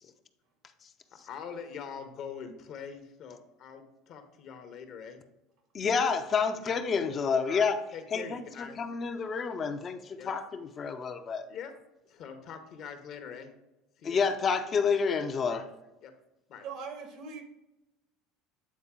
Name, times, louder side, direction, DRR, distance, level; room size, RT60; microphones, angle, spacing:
voice 1, 1.2-5.2 6.6-6.8 7.5-8.8 10.2-10.3 11.5-11.7 12.0-13.5 14.0-14.2 15.5-15.6 16.0-16.1 16.5-16.7, left 7 dB, 55° left, 7 dB, 0.9 m, -43 dB
voice 2, 5.7-7.8 8.1-11.4 14.0-15.7, left 5 dB, 40° left, 7 dB, 0.6 m, -29 dB
voice 3, 16.6-17.4, right 5 dB, 65° right, 5 dB, 1.4 m, -40 dB
8.5 x 4.0 x 3.7 m, 0.97 s
hypercardioid pair, 85°, 0 cm